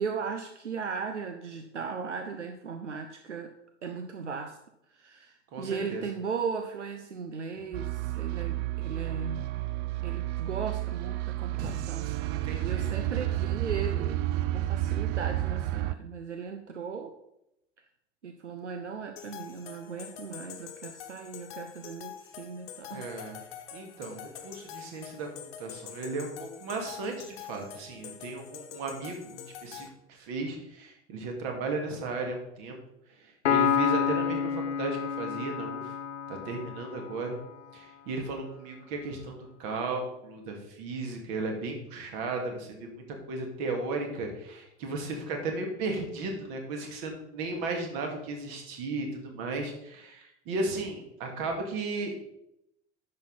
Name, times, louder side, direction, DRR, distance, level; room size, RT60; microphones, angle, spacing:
voice 1, 0.0-3.5 3.8-4.6 4.9-9.5 10.0-14.3 14.5-17.2 18.2-23.1, right 5 dB, 80° right, 6 dB, 0.7 m, -37 dB
voice 2, 5.5-6.0 11.5-11.7 12.3-13.0 22.9-23.4 23.7-32.8 33.2-35.9 36.3-37.4 37.7-52.2, right 3 dB, 50° right, 2 dB, 2.2 m, -35 dB
sound 1, 7.7-15.9, right 15 dB, 30° right, 0.4 m, -31 dB
sound 2, 19.2-29.9, left 9 dB, 55° left, 1.2 m, -45 dB
Piano, 33.5-37.1, left 7 dB, 70° left, 0.7 m, -28 dB
10.5 x 6.4 x 4.0 m, 0.82 s
figure-of-eight pair, 80°, 35 cm